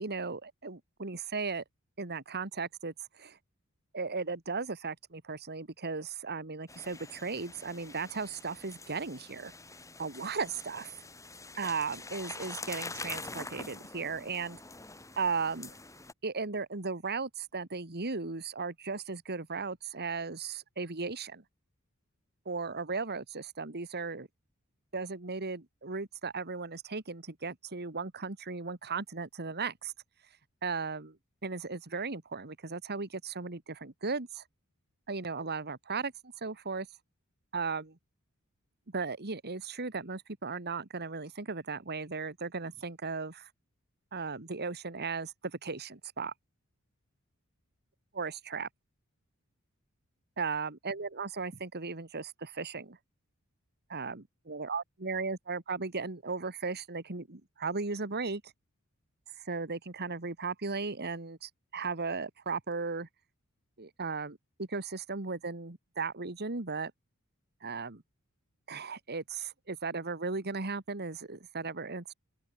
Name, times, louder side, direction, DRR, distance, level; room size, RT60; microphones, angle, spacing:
voice 1, 0.0-1.6 2.0-3.4 3.9-9.5 10.0-10.9 11.6-14.6 15.2-15.7 16.2-21.4 22.5-24.3 24.9-29.9 30.6-31.2 31.4-34.4 35.1-36.1 36.4-36.9 37.5-38.0 38.9-43.5 44.1-46.3 48.1-48.7 50.4-53.0 53.9-58.5 59.4-63.1 63.8-66.9 67.6-68.0 68.7-72.1, right 4 dB, 50° right, 2.0 m, -36 dB
sound 1, 6.7-16.1, left 3 dB, 15° left, 3.6 m, -45 dB
open air
head